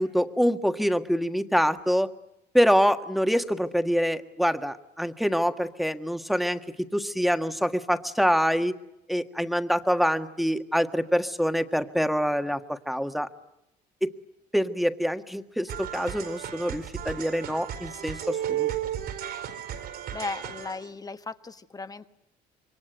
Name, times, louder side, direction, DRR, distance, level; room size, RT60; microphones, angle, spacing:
voice 1, 0.0-2.1 2.5-8.8 9.1-13.3 14.0-14.1 14.5-18.7, equal, ahead, 8 dB, 1.6 m, -25 dB
sound 1, 15.7-20.9, right 10 dB, 70° right, 4.5 m, -34 dB
voice 2, 20.1-22.1, left 3 dB, 20° left, 10 dB, 1.3 m, -36 dB
27.0 x 23.5 x 9.2 m, 0.84 s
cardioid pair, 110°, 17 cm